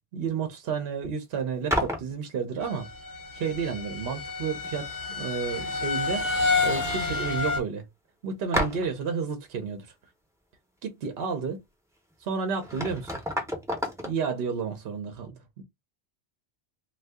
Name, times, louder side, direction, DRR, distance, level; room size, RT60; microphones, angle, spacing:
voice 1, 0.1-2.9 3.3-6.3 6.6-7.8 8.2-9.9 10.8-11.6 12.2-13.1 14.0-15.6, right 6 dB, 65° right, 0.8 m, -31 dB
sound 1, 1.7-2.1 4.2-4.3 4.6-5.2 5.5-6.3 6.5-6.6 7.2-7.3 8.5-9.1 12.1-12.2 12.5-14.2, equal, 5° right, 0.6 m, -31 dB
sound 2, 2.6-7.6, left 4 dB, 50° left, 1.0 m, -29 dB
2.6 x 2.3 x 3.4 m
omnidirectional pair, 1.1 m